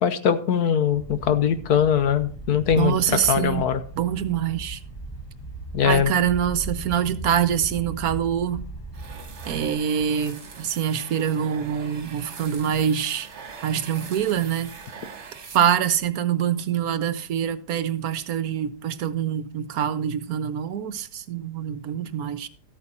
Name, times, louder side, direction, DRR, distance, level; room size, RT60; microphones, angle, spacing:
voice 1, 0.0-3.8 5.7-6.1, left 8 dB, 70° left, 1.4 m, -21 dB
sound 1, 0.9-9.7, right 2 dB, 15° left, 1.6 m, -38 dB
voice 2, 2.8-3.7 4.0-4.8 5.8-8.7 9.5-13.3 13.6-14.7 15.5-22.5, right 9 dB, 65° right, 1.1 m, -25 dB
sound 2, 8.9-16.1, right 5 dB, 45° right, 1.4 m, -42 dB
13.5 x 8.8 x 4.2 m
omnidirectional pair, 1.8 m